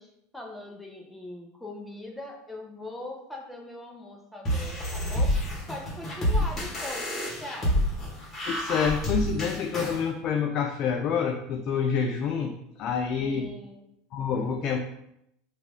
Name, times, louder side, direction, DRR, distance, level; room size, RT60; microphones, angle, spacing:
voice 1, 0.0-5.4 5.7-7.8 13.2-13.8, left 1 dB, 5° left, 1 dB, 0.7 m, -41 dB
sound 1, 4.4-10.0, equal, 35° left, 1.4 m, -28 dB
voice 2, 8.5-13.5 14.1-14.8, left 6 dB, 50° left, 4 dB, 0.3 m, -27 dB
3.1 x 2.5 x 3.5 m, 0.79 s
hypercardioid pair, 90°, 0 cm